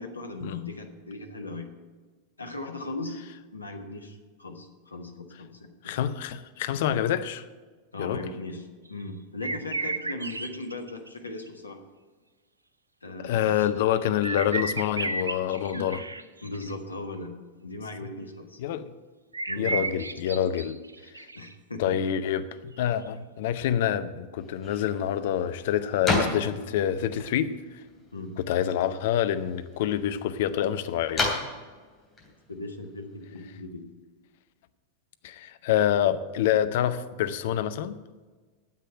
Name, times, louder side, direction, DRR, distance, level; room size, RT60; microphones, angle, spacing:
voice 1, 0.0-1.7 2.4-3.2 3.5-6.0 7.9-8.6 8.9-11.8 13.0-13.8 15.7-15.9 16.4-17.3 17.6-18.6 19.5-19.8 21.3-22.0 28.1-28.3 32.5-33.8, left 2 dB, 80° left, 1.4 m, -38 dB
voice 2, 5.8-7.5 8.0-8.3 13.2-16.0 18.6-18.9 19.6-20.8 21.2-21.3 21.8-27.5 28.4-31.3 35.2-38.0, left 10 dB, 55° left, 0.7 m, -27 dB
sound 1, 8.9-9.0 9.4-11.5 13.6-16.7 19.3-21.5 22.8-22.9, right 3 dB, 80° right, 0.6 m, -33 dB
sound 2, 24.4-33.6, left 2 dB, 20° left, 3.0 m, -35 dB
9.5 x 7.7 x 8.9 m
figure-of-eight pair, 90°, 0 cm